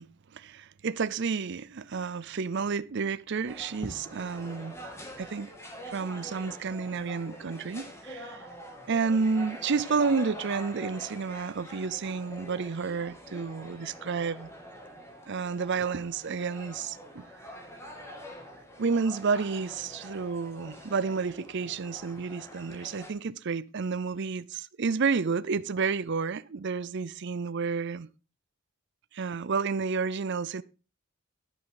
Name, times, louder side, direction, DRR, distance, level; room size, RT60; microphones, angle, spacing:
voice 1, 0.0-4.7 5.2-5.5 5.9-8.5 8.9-14.5 15.3-17.3 18.8-28.1 29.1-30.6, right 5 dB, 55° right, 0.5 m, -30 dB
sound 1, 3.4-23.1, equal, 15° left, 2.4 m, -45 dB
11.5 x 9.5 x 3.9 m
head